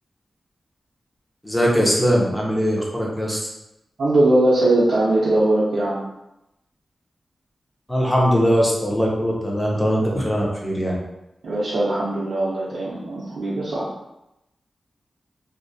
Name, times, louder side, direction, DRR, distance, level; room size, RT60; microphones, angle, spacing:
voice 1, 1.4-3.5 7.9-11.0, equal, 5° left, -3 dB, 0.6 m, -20 dB
voice 2, 4.0-6.0 11.4-13.9, right 1 dB, 90° right, -8 dB, 0.5 m, -20 dB
2.4 x 2.0 x 2.6 m, 0.87 s
wide cardioid pair, 105°, 0 cm